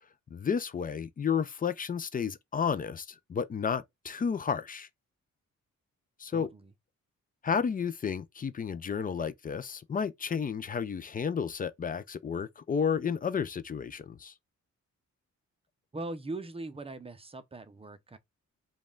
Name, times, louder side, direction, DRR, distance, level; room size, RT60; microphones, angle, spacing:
voice 1, 0.3-4.9 6.2-6.5 7.4-14.3, left 6 dB, 30° left, 0.4 m, -32 dB
voice 2, 6.3-6.7 15.9-18.2, right 2 dB, 20° right, 0.6 m, -40 dB
5.2 x 2.3 x 3.7 m
wide cardioid pair, 140°, 30 cm